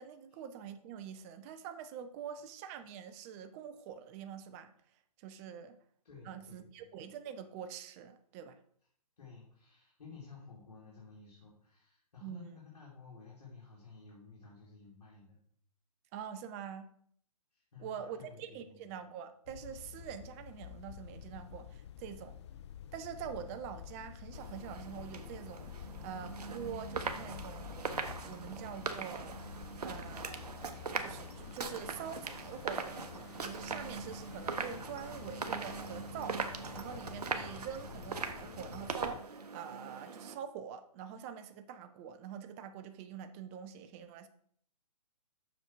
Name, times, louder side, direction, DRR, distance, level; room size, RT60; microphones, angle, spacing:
voice 1, 0.0-4.7 5.2-5.8 6.3-8.6 12.2-12.6 16.1-16.9 17.8-22.4 22.9-27.8 28.2-29.4 29.8-36.4 36.7-44.3, right 8 dB, 25° right, 9 dB, 0.5 m, -45 dB
voice 2, 6.0-6.9 9.2-15.4 17.5-18.8, left 4 dB, 75° left, -5 dB, 2.7 m, -54 dB
sound 1, 19.5-39.2, left 9 dB, 45° left, 0.4 m, -49 dB
sound 2, 24.3-40.3, right 5 dB, 80° right, 0.9 m, -41 dB
6.4 x 5.1 x 4.5 m, 0.62 s
hypercardioid pair, 140°, 20 cm